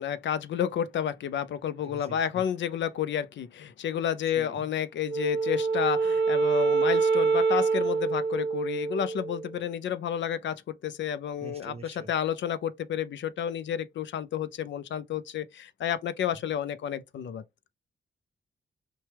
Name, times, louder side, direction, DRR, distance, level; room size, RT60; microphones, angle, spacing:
voice 1, 0.0-17.4, left 9 dB, 75° left, 0.5 m, -31 dB
voice 2, 1.8-2.4 4.3-4.6 11.4-12.1, right 3 dB, 30° right, 0.7 m, -45 dB
Wind instrument woodwind instrument, 5.1-9.5, right 4 dB, 70° right, 0.6 m, -26 dB
5.9 x 2.2 x 3.3 m
wide cardioid pair, 140°, 19 cm